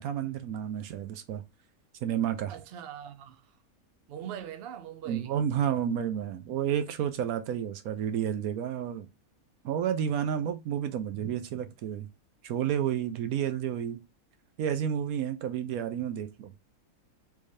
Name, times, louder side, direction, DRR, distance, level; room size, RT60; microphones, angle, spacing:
voice 1, 0.0-1.4 2.0-2.5 5.1-9.1 9.6-12.1 12.4-14.0 14.6-16.5, right 9 dB, 80° right, 1.1 m, -31 dB
voice 2, 2.5-3.5 4.1-5.3, right 9 dB, 55° right, 0.7 m, -41 dB
3.4 x 3.3 x 2.6 m
omnidirectional pair, 1.5 m